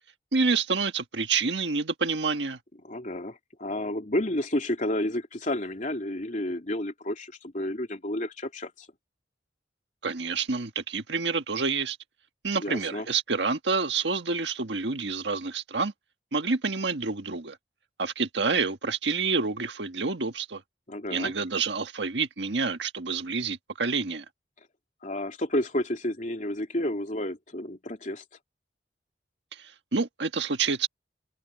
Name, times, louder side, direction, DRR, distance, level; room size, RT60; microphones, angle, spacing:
voice 1, 0.3-2.6 10.0-12.0 12.4-15.9 16.3-17.6 18.0-20.6 21.1-24.2 29.9-30.9, right 4 dB, 90° right, 1.6 m, -28 dB
voice 2, 2.8-8.9 12.6-13.1 20.9-21.3 25.0-28.2, left 1 dB, 45° left, 3.1 m, -31 dB
head